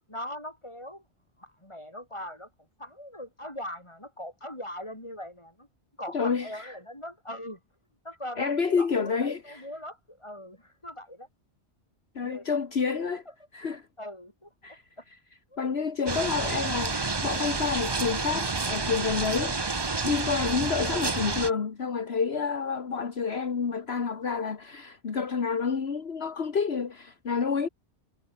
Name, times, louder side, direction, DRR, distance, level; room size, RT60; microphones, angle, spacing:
voice 1, 0.1-1.0 1.4-2.5 2.8-5.7 6.0-7.6 8.0-11.3 12.2-12.4 13.3-13.4 14.0-15.0 15.5-15.6, left 1 dB, 25° left, 8.0 m, -41 dB
voice 2, 6.1-6.7 8.4-9.6 12.2-13.2 13.5-13.9 14.6-14.8 15.6-19.6 20.0-27.7, left 5 dB, 65° left, 1.8 m, -29 dB
sound 1, 16.1-21.5, right 3 dB, 25° right, 0.9 m, -29 dB
omnidirectional pair, 1.2 m